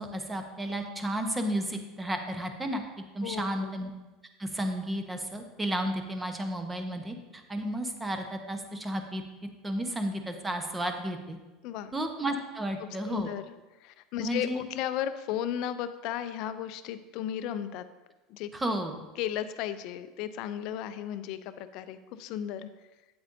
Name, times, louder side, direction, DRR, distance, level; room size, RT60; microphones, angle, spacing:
voice 1, 0.0-3.9 4.4-9.2 9.6-11.4 11.9-13.3 14.2-14.6 18.5-19.0, right 1 dB, 15° right, 5 dB, 1.0 m, -33 dB
voice 2, 3.2-3.7 11.6-11.9 13.1-13.5 13.8-17.9 18.3-18.5 19.2-22.7, left 10 dB, 60° left, 12 dB, 0.4 m, -35 dB
8.5 x 8.0 x 2.7 m, 1.1 s
hypercardioid pair, 85°, 0 cm